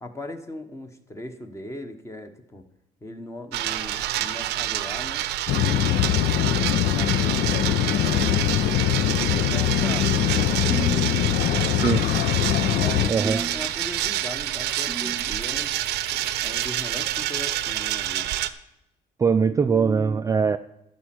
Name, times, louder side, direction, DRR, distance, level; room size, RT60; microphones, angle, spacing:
voice 1, 0.0-2.7 3.0-5.3 6.4-8.5 9.2-12.0 12.7-15.8 16.1-18.3, left 1 dB, 15° left, 7 dB, 1.2 m, -39 dB
sound 1, 3.5-18.5, right 13 dB, 80° right, 0.7 m, -28 dB
sound 2, 5.5-13.1, left 12 dB, 60° left, 0.5 m, -22 dB
sound 3, 9.0-16.4, right 3 dB, 5° right, 0.8 m, -38 dB
voice 2, 13.1-13.4 19.2-20.6, right 5 dB, 20° right, 8 dB, 0.3 m, -21 dB
13.0 x 4.4 x 7.7 m, 0.85 s
cardioid pair, 110°, 17 cm